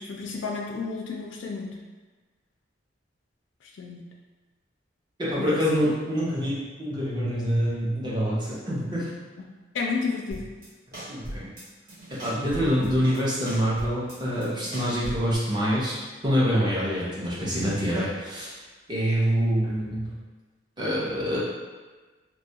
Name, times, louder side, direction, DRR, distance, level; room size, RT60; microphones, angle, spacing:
voice 1, 0.0-1.7 3.8-4.0 5.4-5.6 9.4-9.5 9.7-10.5 17.4-17.7, left 4 dB, 80° left, -1 dB, 0.3 m, -31 dB
voice 2, 5.2-9.1 11.1-11.5 12.2-15.9 16.2-18.6 18.9-20.1 20.8-21.4, equal, 25° right, -7 dB, 0.6 m, -26 dB
sound 1, 10.3-10.7 10.9-11.6 11.9-13.2 13.5-15.4, equal, 55° right, 0.9 m, -38 dB
2.2 x 2.2 x 2.7 m, 1.3 s
head